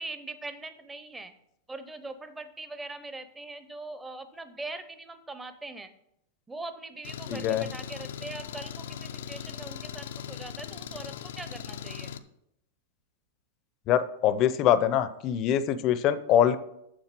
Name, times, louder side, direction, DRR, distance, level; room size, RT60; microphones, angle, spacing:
voice 1, 0.0-1.3 1.7-5.9 6.5-12.1, right 2 dB, 10° right, 10 dB, 0.6 m, -41 dB
Engine, 7.0-12.2, left 8 dB, 85° left, 0.6 m, -39 dB
voice 2, 7.3-7.7 13.9-16.6, left 10 dB, 35° left, 14 dB, 0.6 m, -24 dB
7.5 x 6.3 x 5.9 m, 0.79 s
supercardioid pair, 155°, 0 cm